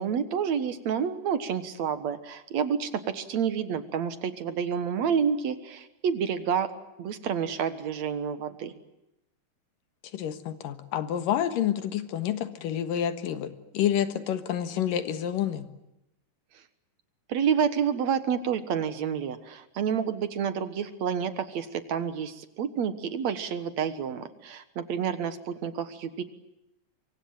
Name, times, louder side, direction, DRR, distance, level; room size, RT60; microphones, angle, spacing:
voice 1, 0.0-6.7 7.0-8.7 17.3-26.2, right 7 dB, 60° right, 11 dB, 2.4 m, -29 dB
voice 2, 10.1-15.7, left 10 dB, 85° left, 11 dB, 3.1 m, -29 dB
25.0 x 24.0 x 8.8 m, 0.87 s
omnidirectional pair, 3.8 m